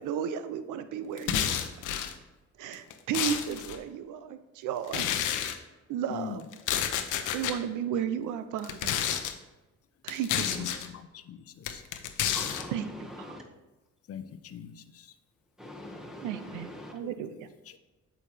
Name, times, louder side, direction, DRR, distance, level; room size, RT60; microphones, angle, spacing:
voice 1, 0.0-1.7 2.6-5.1 5.9-6.4 7.3-8.9 10.0-10.9 12.7-13.4 16.2-17.5, right 9 dB, 85° right, 12 dB, 0.5 m, -34 dB
sound 1, 1.2-2.1 2.7-3.8 4.9-5.6 6.5-7.6 8.6-9.3 10.1-10.9 11.6-12.6, left 9 dB, 85° left, 0.7 m, -30 dB
voice 2, 10.3-11.8 14.1-15.1 17.0-17.1, left 9 dB, 50° left, 11 dB, 0.6 m, -41 dB
voice 3, 12.3-13.4 15.6-17.0, left 1 dB, ahead, 1 dB, 1.6 m, -43 dB
8.4 x 6.3 x 3.3 m, 1.1 s
cardioid pair, 90°, 30 cm